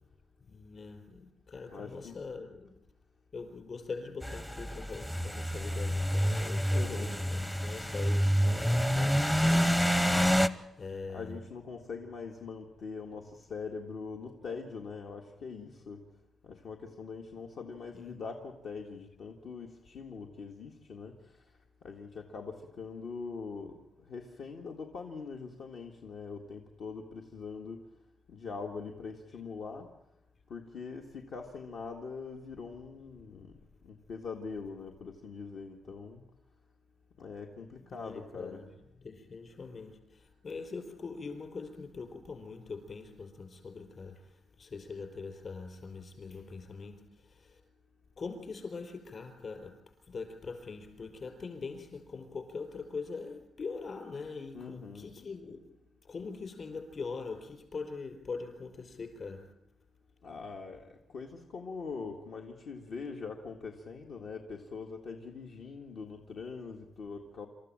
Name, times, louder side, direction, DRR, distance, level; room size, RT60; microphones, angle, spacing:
voice 1, 0.5-2.7 3.3-9.9 10.8-11.3 17.9-18.2 37.9-38.7 39.0-47.6 48.2-49.8 50.1-55.6 56.0-59.5, left 4 dB, 40° left, 7 dB, 4.3 m, -42 dB
voice 2, 1.7-2.2 6.6-7.2 11.1-16.0 16.4-21.1 21.8-23.8 24.1-27.8 28.3-29.9 30.5-33.5 33.8-36.2 37.2-38.6 54.5-55.1 60.2-60.9 61.1-67.5, left 5 dB, 65° left, 2 dB, 1.7 m, -42 dB
sound 1, 4.2-10.5, equal, 10° left, 0.7 m, -28 dB
27.0 x 14.0 x 8.9 m, 0.83 s
wide cardioid pair, 160°, 0 cm